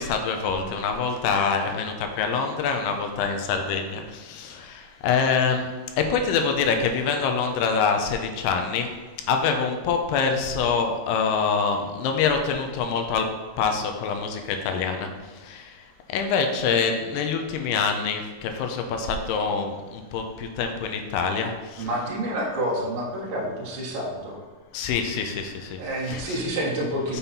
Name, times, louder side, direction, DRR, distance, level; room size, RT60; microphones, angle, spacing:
voice 1, 0.0-13.3 13.6-21.9 24.7-25.8 26.1-26.4 27.1-27.2, left 5 dB, 90° left, 5 dB, 2.7 m, -25 dB
voice 2, 21.8-24.4 25.8-27.2, right 1 dB, 60° right, -4 dB, 2.8 m, -28 dB
7.0 x 5.7 x 4.2 m, 1.3 s
omnidirectional pair, 4.7 m